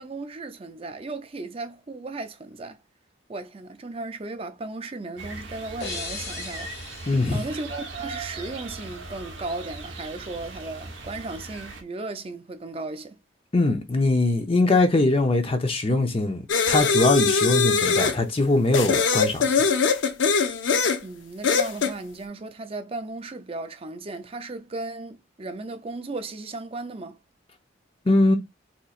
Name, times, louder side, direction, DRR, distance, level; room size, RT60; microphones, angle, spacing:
voice 1, 0.0-2.8 3.3-13.2 21.0-27.2, right 2 dB, 30° right, 0.5 m, -36 dB
sound 1, 5.2-11.8, right 3 dB, 85° right, 0.9 m, -39 dB
sound 2, 5.8-8.6, left 3 dB, 60° left, 1.4 m, -39 dB
voice 2, 7.1-7.4 13.5-19.5 28.1-28.4, left 2 dB, 30° left, 0.6 m, -22 dB
sound 3, 16.5-18.2 18.7-21.0 21.4-21.9, left 5 dB, 80° left, 0.5 m, -22 dB
4.0 x 3.0 x 2.4 m
head